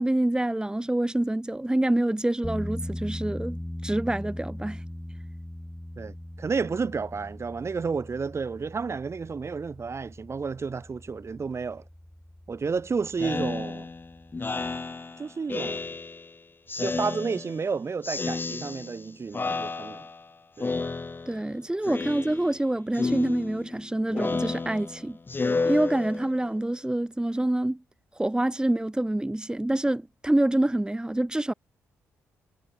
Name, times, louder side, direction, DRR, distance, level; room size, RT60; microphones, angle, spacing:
voice 1, 0.0-4.8 21.3-25.2 25.6-27.8 28.1-31.5, right 1 dB, 10° right, 3.0 m, -26 dB
sound 1, 2.4-14.8, left 1 dB, 5° left, 2.6 m, -40 dB
voice 2, 6.0-11.8 12.5-13.9 15.2-15.9 16.8-20.1 20.6-20.7, right 5 dB, 40° right, 6.3 m, -31 dB
Speech synthesizer, 13.2-16.3 16.7-17.7 18.0-19.1 19.3-20.3 20.6-21.5 21.8-22.6 22.9-26.5, left 3 dB, 30° left, 1.9 m, -32 dB
hypercardioid pair, 45°, 7 cm